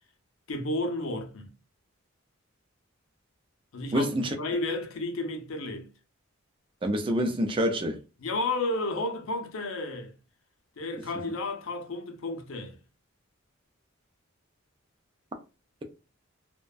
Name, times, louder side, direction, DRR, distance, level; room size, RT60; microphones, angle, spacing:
voice 1, 0.5-1.5 3.7-5.9 8.2-10.1 10.8-12.8, left 2 dB, 75° left, 0.6 m, -32 dB
voice 2, 3.9-4.4 6.8-8.0, equal, 25° right, 0.4 m, -26 dB
2.5 x 2.1 x 2.3 m
head